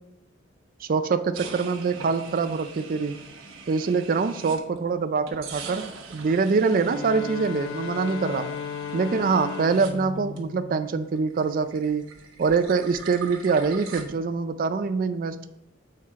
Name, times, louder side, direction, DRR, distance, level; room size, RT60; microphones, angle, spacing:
voice 1, 0.8-3.2 3.7-8.5 8.9-12.0 12.4-15.5, right 4 dB, 45° right, 10 dB, 0.4 m, -24 dB
sound 1, 1.3-4.9 5.3-10.8 11.1-14.0, right 5 dB, 80° right, 1.0 m, -42 dB
Bowed string instrument, 6.7-11.7, left 6 dB, 60° left, 0.5 m, -36 dB
7.4 x 4.3 x 4.8 m, 0.85 s
head